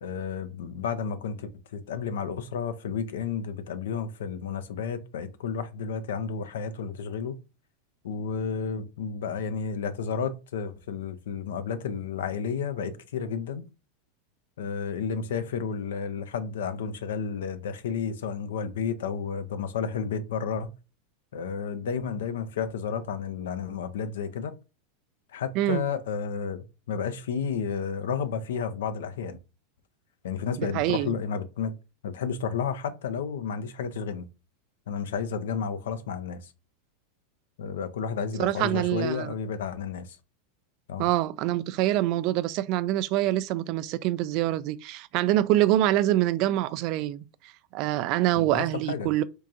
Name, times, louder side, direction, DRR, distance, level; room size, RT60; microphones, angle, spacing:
voice 1, 0.0-7.4 8.0-13.6 14.6-20.7 21.3-24.5 25.3-29.4 30.2-31.7 32.0-34.3 34.9-36.5 37.6-40.2 40.9-41.1 48.4-49.1, left 6 dB, 80° left, 0.5 m, -32 dB
voice 2, 30.6-31.1 38.4-39.3 41.0-47.2 47.7-49.2, right 14 dB, 55° right, 0.3 m, -25 dB
4.5 x 2.4 x 2.7 m
hypercardioid pair, 100°, 0 cm